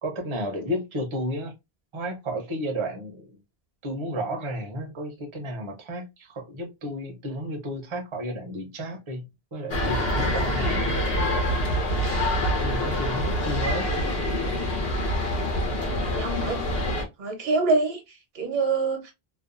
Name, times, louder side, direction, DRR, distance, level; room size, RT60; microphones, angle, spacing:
voice 1, 0.0-1.5 1.9-3.4 3.8-9.3 9.5-11.0 12.4-13.9, equal, 35° right, 0.6 m, -32 dB
sound 1, 9.7-17.0, left 1 dB, 70° left, 1.0 m, -26 dB
voice 2, 16.1-16.7 17.2-18.0 18.3-19.1, right 3 dB, 75° right, 1.0 m, -25 dB
2.6 x 2.2 x 2.3 m
omnidirectional pair, 1.0 m